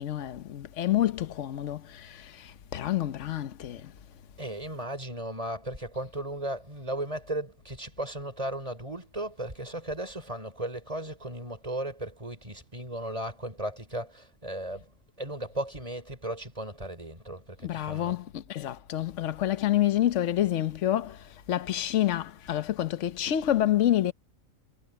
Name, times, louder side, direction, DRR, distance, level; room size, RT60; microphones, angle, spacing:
voice 1, 0.0-3.9 17.6-24.1, left 12 dB, 65° left, 1.2 m, -28 dB
voice 2, 4.4-18.2, right 1 dB, 25° right, 5.6 m, -36 dB
omnidirectional pair, 1.4 m